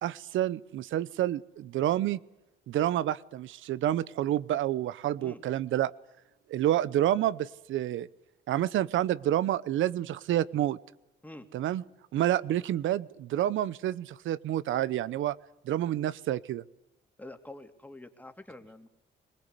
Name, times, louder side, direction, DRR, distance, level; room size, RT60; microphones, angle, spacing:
voice 1, 0.0-2.2 2.7-5.9 6.5-8.1 8.5-10.8 11.5-11.8 12.1-15.4 15.6-16.6, right 12 dB, 80° right, 19 dB, 0.9 m, -28 dB
voice 2, 17.2-18.9, left 1 dB, 10° left, 6 dB, 2.7 m, -46 dB
22.0 x 19.5 x 8.3 m, 0.93 s
cardioid pair, 90°, 20 cm